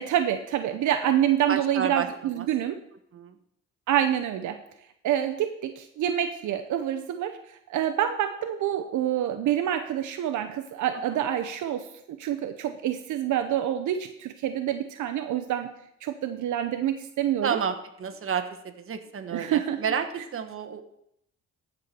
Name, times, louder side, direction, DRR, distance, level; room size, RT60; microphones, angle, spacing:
voice 1, 0.0-2.8 3.9-4.6 5.0-15.7 16.0-17.6 19.3-19.8, right 10 dB, 75° right, 7 dB, 0.8 m, -27 dB
voice 2, 1.5-2.1 2.4-2.5 3.1-3.4 11.1-11.3 17.4-20.8, right 7 dB, 45° right, 7 dB, 1.3 m, -30 dB
13.5 x 4.6 x 6.8 m, 0.76 s
cardioid pair, 90°, 30 cm